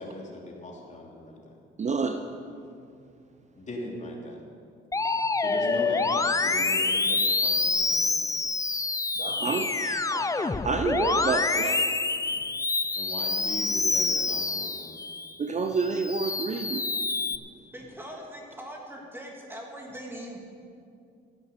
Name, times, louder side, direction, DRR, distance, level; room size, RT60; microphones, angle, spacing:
voice 1, 0.0-1.6 3.6-4.4 5.4-8.2 12.9-14.9, left 1 dB, 35° left, -1 dB, 2.9 m, -39 dB
voice 2, 1.8-2.2 9.2-11.9 15.4-16.8, right 4 dB, 35° right, 6 dB, 0.8 m, -29 dB
Musical instrument, 4.9-15.3 15.8-17.4, left 3 dB, 15° left, 0.6 m, -27 dB
voice 3, 17.7-20.4, equal, 10° right, -1 dB, 3.1 m, -41 dB
15.0 x 8.2 x 7.1 m, 2.4 s
cardioid pair, 90°, 20 cm